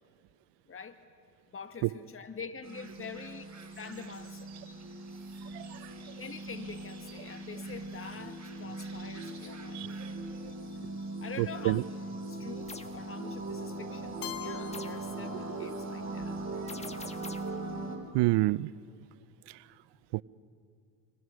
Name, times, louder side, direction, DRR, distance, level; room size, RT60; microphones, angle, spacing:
voice 1, 0.7-1.0 1.5-3.4 3.8-4.5 6.2-10.1 10.8-11.8 12.3-16.4, left 5 dB, 30° left, 8 dB, 1.5 m, -45 dB
sound 1, 2.6-18.0, right 2 dB, 40° right, 4.4 m, -40 dB
voice 2, 5.5-5.9 9.7-9.9 11.4-11.8 16.6-16.9 18.1-18.7 20.1-20.2, right 19 dB, 80° right, 19 dB, 0.5 m, -29 dB
sound 2, 12.7-13.0 14.7-15.1 16.7-17.6, left 2 dB, 15° left, 1.4 m, -45 dB
Keyboard (musical), 14.2-16.1, left 13 dB, 80° left, 1.1 m, -44 dB
25.5 x 24.0 x 6.3 m, 2.4 s
supercardioid pair, 65°, 41 cm